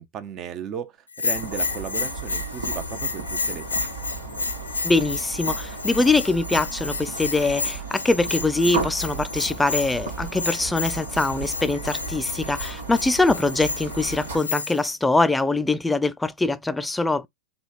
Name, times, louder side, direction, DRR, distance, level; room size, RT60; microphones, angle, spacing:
voice 1, 0.0-3.8, right 8 dB, 35° right, 0.6 m, -35 dB
Bell, 1.1-14.9, left 4 dB, 90° left, 0.5 m, -31 dB
sound 1, 1.3-14.4, right 4 dB, 80° right, 1.3 m, -35 dB
voice 2, 4.8-17.3, left 2 dB, 10° left, 0.3 m, -23 dB
3.2 x 2.3 x 2.5 m
hypercardioid pair, 100°, 0 cm